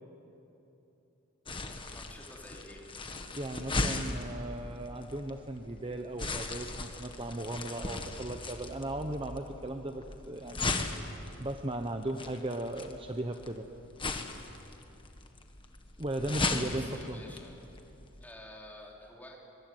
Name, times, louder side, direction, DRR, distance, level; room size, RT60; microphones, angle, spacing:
sound 1, 1.5-18.3, left 3 dB, 25° left, 1.5 m, -38 dB
voice 1, 1.9-2.8 16.5-17.6 18.2-19.4, left 1 dB, 10° left, -2 dB, 3.6 m, -50 dB
voice 2, 3.4-10.8 11.4-13.7 16.0-17.2, right 1 dB, 25° right, 5 dB, 1.0 m, -37 dB
24.0 x 23.0 x 9.3 m, 3.0 s
head